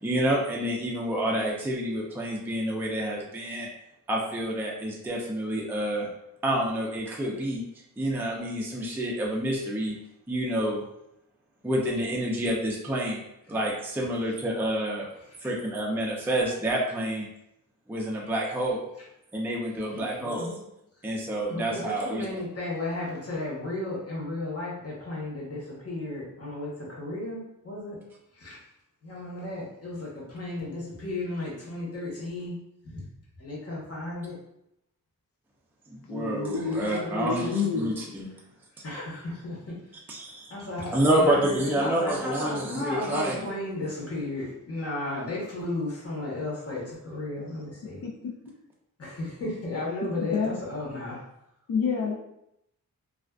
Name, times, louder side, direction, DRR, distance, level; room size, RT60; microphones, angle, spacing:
voice 1, 0.0-3.7 4.1-6.1 6.4-7.6 8.0-10.0 10.3-10.8 11.6-13.2 13.5-15.1 15.4-17.3 17.9-18.9 19.3-20.6 21.0-22.4 35.9-38.3 40.1-40.5 40.9-43.6, right 1 dB, 5° right, -2 dB, 0.4 m, -28 dB
voice 2, 19.9-20.5 21.0-21.1 21.5-28.0 28.3-28.6 29.0-32.6 32.8-33.0 33.4-34.3 36.4-37.5 38.8-40.0 40.5-48.0 49.0-51.2, left 2 dB, 40° left, -5 dB, 1.0 m, -34 dB
voice 3, 36.1-37.9 47.4-47.6 48.0-48.3 49.9-50.6 51.1-51.2 51.7-52.1, left 5 dB, 75° left, -1 dB, 0.5 m, -30 dB
2.4 x 2.3 x 2.2 m, 0.80 s
wide cardioid pair, 80°, 35 cm